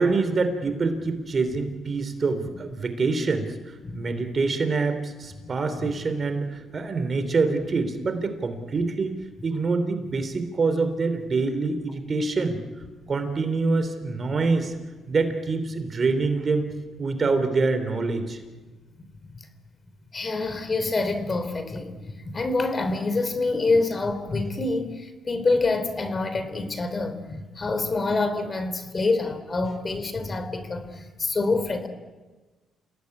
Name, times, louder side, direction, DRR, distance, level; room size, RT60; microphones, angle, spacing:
voice 1, 0.0-12.6 13.1-14.8 15.1-16.7 17.0-18.4, right 4 dB, 40° right, 9 dB, 3.3 m, -25 dB
voice 2, 20.1-31.9, left 3 dB, 30° left, 10 dB, 3.3 m, -26 dB
28.5 x 18.0 x 9.8 m, 1.3 s
cardioid pair, 90°, 0 cm